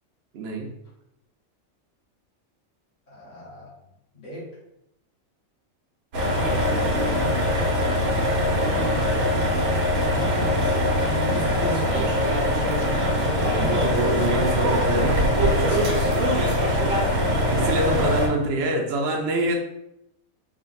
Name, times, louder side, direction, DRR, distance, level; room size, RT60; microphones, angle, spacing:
voice 1, 0.3-0.7 6.7-7.1 13.4-15.4 17.1-19.6, right 1 dB, 65° right, 0 dB, 0.7 m, -26 dB
voice 2, 3.1-3.8 4.1-4.5 9.2-12.1 15.6-15.9 17.6-18.1, equal, 35° left, -8 dB, 0.9 m, -36 dB
sound 1, 6.1-18.3, equal, 85° right, 1.3 m, -22 dB
3.6 x 2.2 x 2.5 m, 0.82 s
omnidirectional pair, 1.5 m